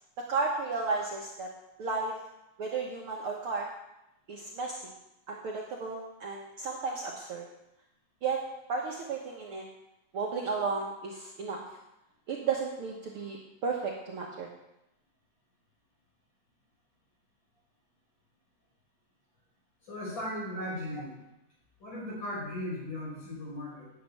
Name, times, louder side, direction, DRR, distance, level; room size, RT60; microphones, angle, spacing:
voice 1, 0.3-1.5 1.8-2.1 2.6-3.7 4.3-4.8 5.3-7.4 8.2-8.4 8.7-9.6 10.1-11.6 12.3-14.5, right 4 dB, 55° right, -1 dB, 1.8 m, -33 dB
voice 2, 19.8-21.2 21.8-23.9, left 1 dB, 40° left, -5 dB, 5.9 m, -37 dB
9.3 x 7.1 x 9.0 m, 0.90 s
omnidirectional pair, 3.4 m